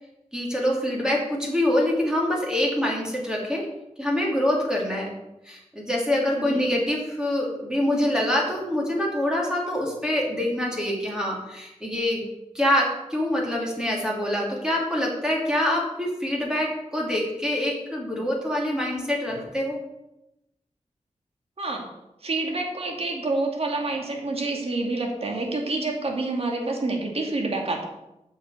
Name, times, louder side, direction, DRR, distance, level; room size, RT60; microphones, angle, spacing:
voice 1, 0.3-3.7 4.0-5.1 5.4-12.2 12.5-19.8, left 1 dB, 5° right, -2 dB, 2.8 m, -25 dB
voice 2, 22.2-27.9, right 2 dB, 55° right, 1 dB, 2.4 m, -28 dB
9.3 x 6.4 x 8.3 m, 0.91 s
wide cardioid pair, 110°, 12 cm